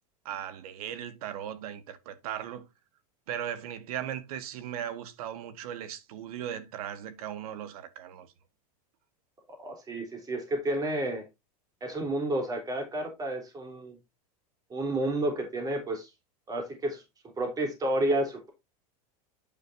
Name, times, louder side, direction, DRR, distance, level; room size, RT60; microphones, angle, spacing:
voice 1, 0.2-2.7 3.3-8.3, right 10 dB, 75° right, 1.6 m, -37 dB
voice 2, 9.6-11.3 11.8-14.0 14.7-16.1 16.5-17.0 17.4-18.5, right 1 dB, 20° right, 3.4 m, -30 dB
9.1 x 6.4 x 2.6 m
supercardioid pair, 135°, 19 cm